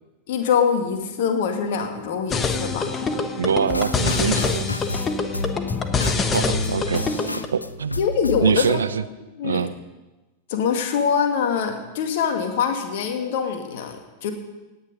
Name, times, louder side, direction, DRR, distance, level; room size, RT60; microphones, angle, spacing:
voice 1, 0.3-3.2 8.0-8.8 9.4-9.6 10.5-14.3, left 6 dB, 50° left, 5 dB, 1.8 m, -24 dB
sound 1, 2.3-7.5, left 4 dB, 20° left, 1.2 m, -25 dB
voice 2, 3.4-4.7 6.2-7.1 7.5-8.0 8.4-9.0 9.4-9.7, right 7 dB, 70° right, 14 dB, 0.5 m, -24 dB
sound 2, 3.7-8.8, left 2 dB, 85° left, 0.4 m, -32 dB
17.5 x 9.4 x 5.2 m, 1.1 s
figure-of-eight pair, 90°, 0 cm